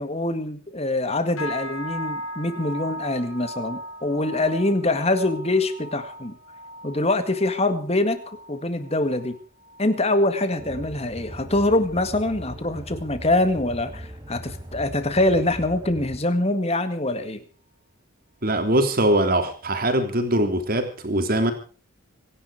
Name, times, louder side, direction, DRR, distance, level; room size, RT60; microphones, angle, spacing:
voice 1, 0.0-6.4 6.8-8.2 8.5-9.4 9.8-17.4, left 2 dB, 30° left, 10 dB, 1.9 m, -24 dB
sound 1, 1.4-10.9 11.2-11.7 12.1-12.4 12.9-13.0, equal, 85° left, 7.5 m, -38 dB
sound 2, 10.6-16.2, right 1 dB, 20° right, 4.5 m, -39 dB
voice 2, 18.4-21.5, right 1 dB, 45° right, 6 dB, 3.4 m, -22 dB
25.0 x 11.0 x 5.0 m, 0.38 s
head